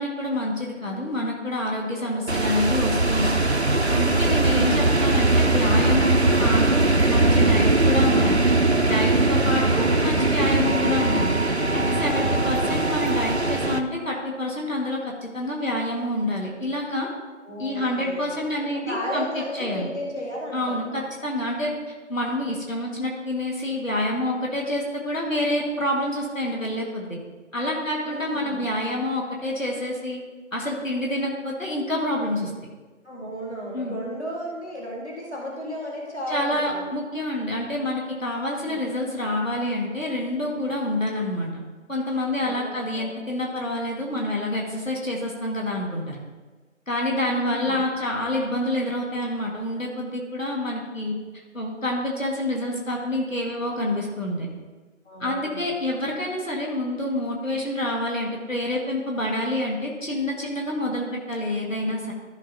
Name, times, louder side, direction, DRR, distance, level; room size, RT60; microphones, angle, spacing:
voice 1, 0.0-3.4 3.9-8.4 8.9-11.3 11.7-17.1 17.6-19.9 20.5-21.7 22.1-27.2 27.5-30.2 30.5-32.5 33.7-34.0 36.3-41.5 41.9-46.2 46.9-51.2 51.5-54.5 55.2-62.1, left 1 dB, 75° left, -2 dB, 2.1 m, -27 dB
voice 2, 2.0-2.5 4.4-4.9 9.6-10.0 12.6-13.0 17.4-18.4 18.7-20.9 28.0-28.7 33.0-36.8 38.6-38.8 42.4-43.4 47.3-47.8 55.1-55.7 60.8-60.9, equal, 55° left, -3 dB, 2.2 m, -34 dB
sound 1, 2.3-13.8, right 2 dB, 55° right, 0.6 m, -20 dB
14.0 x 6.2 x 2.9 m, 1.3 s
figure-of-eight pair, 180°, 39 cm